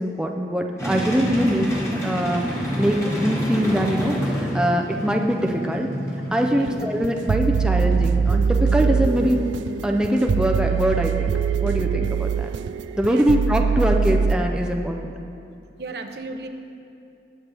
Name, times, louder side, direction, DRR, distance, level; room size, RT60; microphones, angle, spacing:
voice 1, 0.0-5.9 6.3-9.4 9.8-11.3 11.6-12.5 13.0-15.1, equal, 5° right, 1 dB, 0.5 m, -23 dB
sound 1, 0.8-11.5, equal, 15° left, 1.9 m, -29 dB
sound 2, 6.7-14.4, right 6 dB, 90° right, 0.3 m, -22 dB
voice 2, 15.8-16.5, right 3 dB, 60° right, 6 dB, 0.8 m, -34 dB
20.0 x 7.7 x 3.4 m, 2.6 s
head